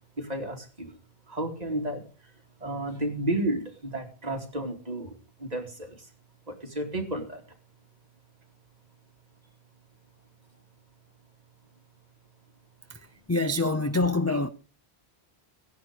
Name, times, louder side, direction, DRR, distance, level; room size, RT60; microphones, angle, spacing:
voice 1, 0.2-0.9 1.3-2.0 2.6-5.1 5.4-6.1 6.5-7.4, right 1 dB, 35° right, 2.9 m, -32 dB
voice 2, 12.9-14.5, left 2 dB, 15° left, 0.6 m, -26 dB
16.0 x 10.5 x 5.1 m
omnidirectional pair, 1.1 m